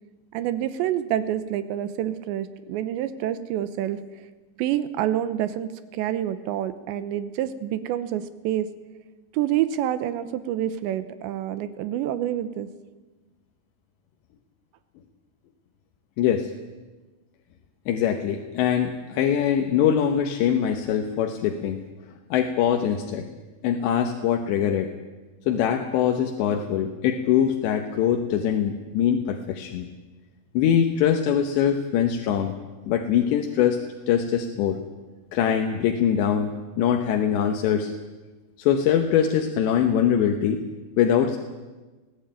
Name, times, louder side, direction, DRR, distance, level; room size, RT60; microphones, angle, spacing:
voice 1, 0.3-4.0 4.6-8.7 9.3-12.7, right 11 dB, 85° right, 12 dB, 3.1 m, -27 dB
voice 2, 16.2-16.5 17.9-21.8 22.3-23.3 23.6-24.9 25.5-29.9 30.5-32.5 32.9-33.8 34.1-34.8 35.3-37.9 38.6-40.6 41.0-41.4, left 9 dB, 75° left, 4 dB, 3.3 m, -23 dB
21.0 x 16.5 x 8.9 m, 1.2 s
omnidirectional pair, 5.2 m